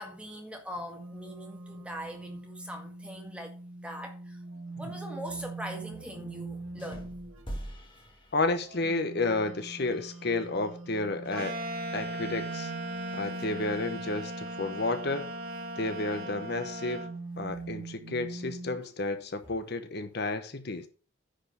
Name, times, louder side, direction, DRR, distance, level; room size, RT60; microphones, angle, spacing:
voice 1, 0.0-3.5 3.8-4.4 4.8-7.2, equal, 5° right, 1.9 m, -41 dB
sound 1, 1.0-7.5 8.6-18.9, right 2 dB, 80° right, 1.9 m, -42 dB
sound 2, 6.8-9.0, right 1 dB, 25° left, 1.9 m, -43 dB
voice 2, 8.3-11.6 11.9-12.7 13.1-15.3 15.8-17.1 17.4-20.9, left 2 dB, 50° left, 1.0 m, -31 dB
sound 3, 11.3-17.1, right 1 dB, 45° right, 2.2 m, -39 dB
10.0 x 5.1 x 6.7 m
head